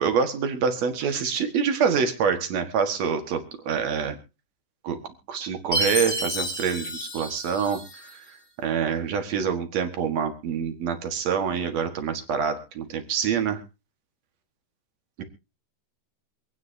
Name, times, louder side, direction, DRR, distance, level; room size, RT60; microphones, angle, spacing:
voice 1, 0.0-4.2 4.8-5.0 5.3-8.4 8.6-13.6 15.2-15.3, right 6 dB, 60° right, 7 dB, 2.6 m, -26 dB
Chime, 5.7-8.2, equal, 20° left, 2.6 m, -30 dB
26.0 x 9.5 x 2.7 m, 0.29 s
omnidirectional pair, 3.7 m